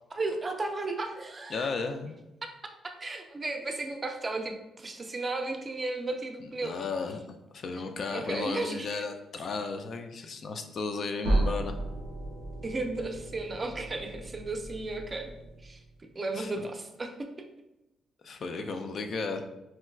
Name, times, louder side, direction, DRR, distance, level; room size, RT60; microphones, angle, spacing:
voice 1, 0.1-1.7 3.0-6.8 8.1-9.0 12.6-15.3 15.6-15.8 16.2-17.3, right 2 dB, 30° right, 5 dB, 0.4 m, -34 dB
voice 2, 1.5-2.1 6.6-7.2 7.5-11.8 16.4-16.7 18.2-19.4, left 4 dB, 55° left, 6 dB, 0.3 m, -34 dB
sound 1, 11.2-16.0, right 1 dB, 85° right, 0.4 m, -33 dB
4.5 x 2.1 x 2.3 m, 0.95 s
cardioid pair, 90°, 0 cm